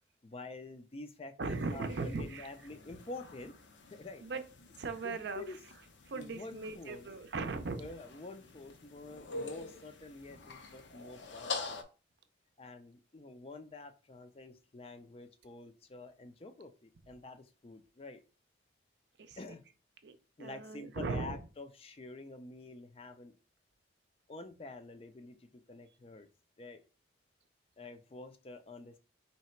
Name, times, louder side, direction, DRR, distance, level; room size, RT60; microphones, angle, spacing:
voice 1, 0.2-3.6 3.9-4.2 5.0-5.6 6.2-7.1 7.8-11.8 12.6-18.2 19.4-19.6 20.4-23.3 24.3-26.3 26.6-26.8 27.8-29.0, left 2 dB, 30° left, 8 dB, 0.4 m, -48 dB
sound 1, 1.4-11.8, left 4 dB, 70° left, 0.7 m, -46 dB
voice 2, 1.4-2.5 4.2-4.4 4.8-5.4 6.1-7.8 19.2-19.4 20.0-21.4, right 3 dB, 65° right, 9 dB, 0.5 m, -38 dB
3.3 x 2.9 x 4.3 m, 0.34 s
head